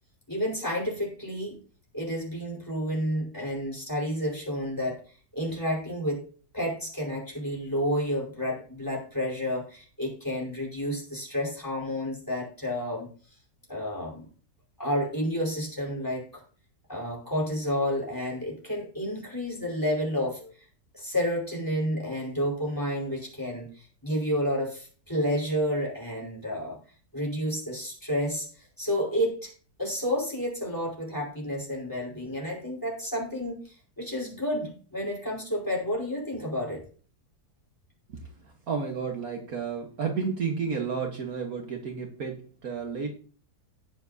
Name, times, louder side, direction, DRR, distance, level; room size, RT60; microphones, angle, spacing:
voice 1, 0.3-1.6 1.9-5.0 5.3-6.2 6.5-13.1 13.7-14.3 14.8-16.4 16.9-20.5 20.9-26.8 27.1-28.5 28.8-29.5 29.8-36.8, equal, 10° left, -1 dB, 5.1 m, -30 dB
voice 2, 38.1-43.1, right 5 dB, 60° right, 3 dB, 1.7 m, -32 dB
19.0 x 7.1 x 2.7 m, 0.40 s
omnidirectional pair, 1.8 m